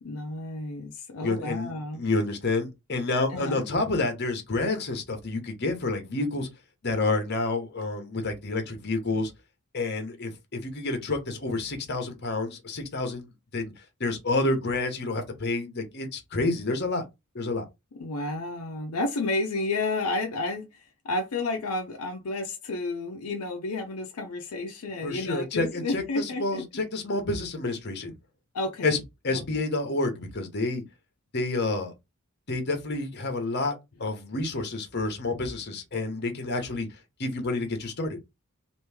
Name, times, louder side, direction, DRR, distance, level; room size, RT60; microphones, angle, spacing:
voice 1, 0.0-2.0 3.3-3.7 17.9-26.6 28.5-29.0 29.3-29.6, left 2 dB, 80° left, 0.5 m, -31 dB
voice 2, 1.2-6.5 6.8-9.3 9.7-13.7 14.0-17.0 17.3-17.7 25.0-28.1 28.8-29.0 29.2-30.8 31.3-31.9 32.5-33.7 34.0-36.9 37.2-38.2, left 2 dB, 50° left, 1.0 m, -29 dB
3.0 x 2.6 x 3.4 m
head